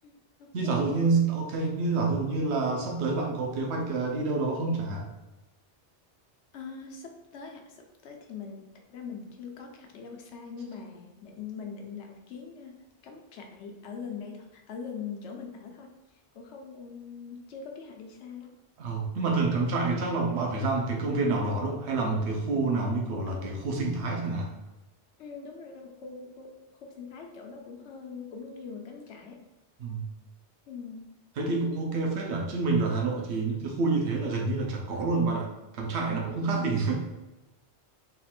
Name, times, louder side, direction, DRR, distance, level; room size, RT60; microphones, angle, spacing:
voice 1, 0.0-0.8 6.5-8.6 8.9-12.8 13.0-15.9 16.3-18.5 23.3-23.6 25.2-29.4 30.7-31.1 36.5-36.8, left 5 dB, 80° left, 2 dB, 1.0 m, -42 dB
voice 2, 0.5-5.0 18.8-24.5 29.8-30.0 31.4-36.9, right 3 dB, 70° right, 0 dB, 1.0 m, -28 dB
3.9 x 2.5 x 4.3 m, 1.0 s
omnidirectional pair, 1.2 m